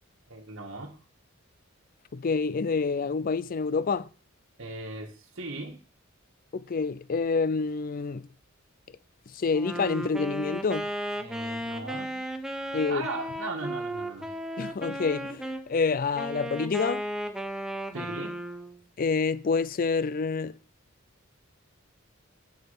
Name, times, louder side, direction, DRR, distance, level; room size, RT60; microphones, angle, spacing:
voice 1, 0.3-1.0 4.6-5.8 11.2-12.1 12.9-14.3 17.9-18.4, right 2 dB, 70° right, 1.5 m, -37 dB
voice 2, 2.1-4.1 6.5-8.3 9.4-10.9 12.7-13.0 14.6-17.0 19.0-20.5, left 4 dB, 45° left, 0.4 m, -27 dB
Wind instrument woodwind instrument, 9.5-15.6 16.1-18.8, right 1 dB, 5° right, 0.9 m, -35 dB
7.9 x 6.8 x 5.5 m
head